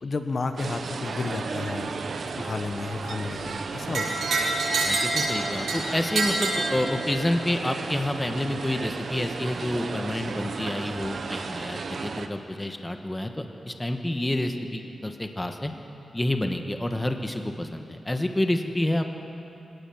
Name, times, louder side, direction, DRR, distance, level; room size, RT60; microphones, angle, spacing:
voice 1, 0.0-1.9 2.4-4.2, left 3 dB, 50° left, 6 dB, 1.4 m, -32 dB
sound 1, 0.6-12.3, right 4 dB, 60° right, 1.2 m, -34 dB
sound 2, 3.9-7.3, right 3 dB, 80° right, 6.4 m, -27 dB
voice 2, 4.8-15.7 16.1-19.0, left 1 dB, 15° left, 5 dB, 1.4 m, -28 dB
24.5 x 17.5 x 7.3 m, 2.9 s
wide cardioid pair, 95°, 0 cm